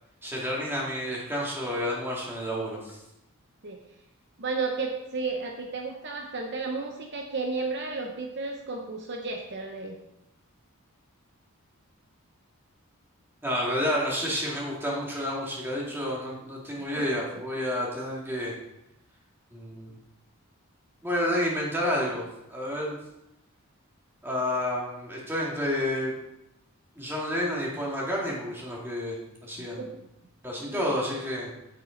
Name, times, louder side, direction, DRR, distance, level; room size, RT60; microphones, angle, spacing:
voice 1, 0.2-3.0 13.4-18.5 19.5-19.9 21.0-23.0 24.2-26.1 27.0-29.8 30.4-31.5, left 1 dB, 10° right, -4 dB, 2.1 m, -30 dB
voice 2, 4.4-10.0 16.9-17.4 29.6-30.1 30.6-30.8, right 3 dB, 50° right, 2 dB, 0.8 m, -33 dB
8.7 x 7.6 x 3.9 m, 0.87 s
head